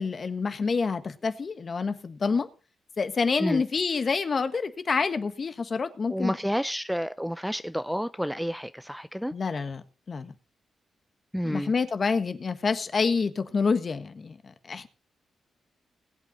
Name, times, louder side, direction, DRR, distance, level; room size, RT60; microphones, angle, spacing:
voice 1, 0.0-2.5 3.0-6.4 9.3-10.3 11.4-14.9, left 5 dB, 45° left, 1.5 m, -28 dB
voice 2, 6.1-9.3 11.3-11.7, equal, ahead, 0.5 m, -30 dB
21.0 x 8.4 x 4.0 m
cardioid pair, 90°, 0 cm